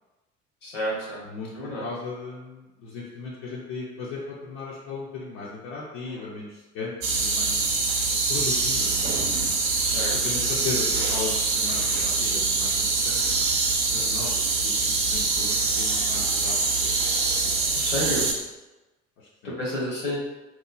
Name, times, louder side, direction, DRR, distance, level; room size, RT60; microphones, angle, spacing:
voice 1, 0.6-1.2 1.5-1.8 6.1-6.2 9.8-10.1 17.7-18.3 19.4-20.2, equal, 75° left, -4 dB, 1.0 m, -30 dB
voice 2, 1.2-7.6 8.3-9.1 10.1-13.2 13.9-16.9 17.3-17.7 19.2-19.5, left 4 dB, 50° left, -5 dB, 0.6 m, -37 dB
sound 1, 7.0-18.3, right 3 dB, 45° right, 0.6 m, -24 dB
3.0 x 2.1 x 2.4 m, 1.1 s
figure-of-eight pair, 65°, 38 cm